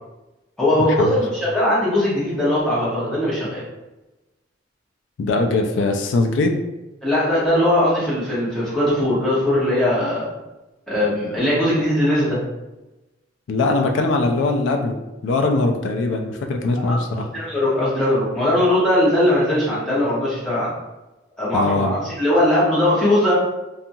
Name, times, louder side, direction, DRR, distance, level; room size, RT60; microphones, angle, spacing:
voice 1, 0.6-3.6 7.0-10.3 10.9-12.4 16.7-20.7 21.4-23.3, left 1 dB, 5° left, -9 dB, 1.0 m, -20 dB
voice 2, 5.2-6.6 13.5-15.0 15.2-17.3 21.5-21.9, left 3 dB, 80° left, 3 dB, 0.3 m, -21 dB
2.7 x 2.4 x 2.7 m, 1.0 s
head